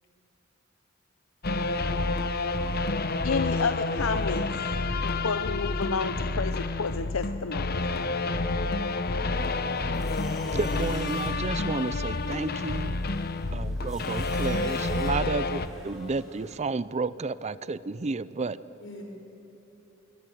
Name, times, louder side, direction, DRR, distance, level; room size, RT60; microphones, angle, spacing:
sound 1, 1.4-15.7, left 3 dB, 50° left, 1.0 m, -29 dB
voice 1, 3.2-4.4 5.0-7.8, left 5 dB, 85° left, 10 dB, 0.8 m, -30 dB
sound 2, 9.4-16.6, equal, ahead, 6.2 m, -50 dB
voice 2, 10.5-12.9 13.5-18.6, right 3 dB, 35° right, 17 dB, 0.5 m, -31 dB
voice 3, 18.8-19.0, equal, 65° left, 1 dB, 5.9 m, -45 dB
26.5 x 23.0 x 9.3 m, 2.9 s
head